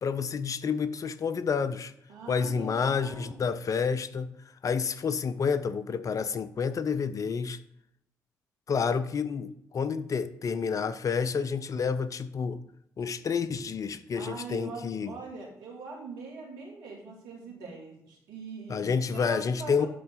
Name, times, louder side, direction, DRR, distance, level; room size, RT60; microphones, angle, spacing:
voice 1, 0.0-1.9 2.3-4.3 4.6-7.6 8.7-12.6 13.0-15.1 18.7-19.9, left 6 dB, 50° left, 13 dB, 0.7 m, -29 dB
voice 2, 2.1-3.4 14.1-19.9, right 4 dB, 75° right, -2 dB, 2.5 m, -42 dB
12.0 x 4.0 x 3.8 m, 0.73 s
hypercardioid pair, 45°, 7 cm